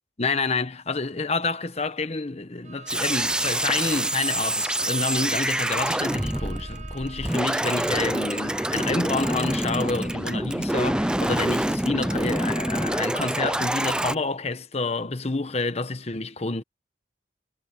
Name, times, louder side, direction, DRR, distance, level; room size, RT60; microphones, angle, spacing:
voice 1, 0.2-16.6, left 3 dB, 35° left, 1.0 m, -28 dB
Bowed string instrument, 2.6-9.1, right 6 dB, 40° right, 7.2 m, -44 dB
sound 1, 2.9-14.2, right 1 dB, 5° right, 0.4 m, -26 dB
head